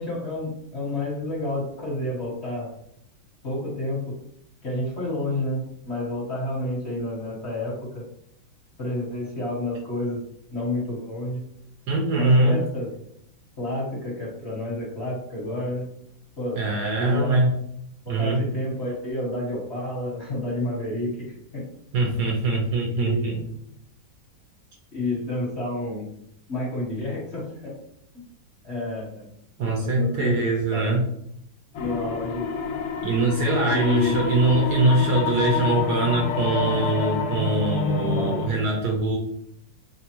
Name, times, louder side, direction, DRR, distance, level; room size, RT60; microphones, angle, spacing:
voice 1, 0.0-2.7 3.4-4.1 4.6-8.0 8.8-10.2 10.5-11.4 12.1-12.9 13.6-15.9 16.4-16.6 17.0-17.4 18.0-21.6 22.8-23.4 24.9-26.1 26.5-27.7 28.6-29.3 29.8-30.4 30.7-31.0 31.8-32.5 33.6-34.4 38.0-38.6, left 1 dB, 40° left, -5 dB, 1.3 m, -30 dB
voice 2, 11.9-12.7 16.6-17.5 18.1-18.4 21.9-23.4 29.6-31.0 33.0-39.2, right 2 dB, 65° right, 0 dB, 1.2 m, -22 dB
sound 1, 31.7-38.5, left 5 dB, 80° left, 0.8 m, -28 dB
4.0 x 3.6 x 2.9 m, 0.73 s
omnidirectional pair, 2.2 m